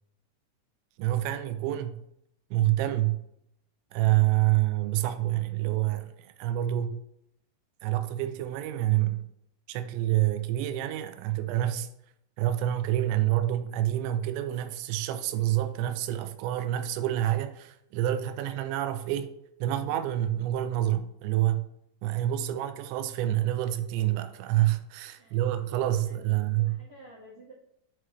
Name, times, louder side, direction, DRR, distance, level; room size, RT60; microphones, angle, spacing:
voice 1, 1.0-2.0 2.5-3.2 3.9-7.0 7.8-9.3 9.7-11.9 12.4-19.3 19.6-21.7 22.0-26.9, right 14 dB, 85° right, 2.8 m, -27 dB
voice 2, 25.2-25.5 26.1-27.5, right 1 dB, 70° right, 1.7 m, -52 dB
7.5 x 4.7 x 3.0 m
omnidirectional pair, 5.1 m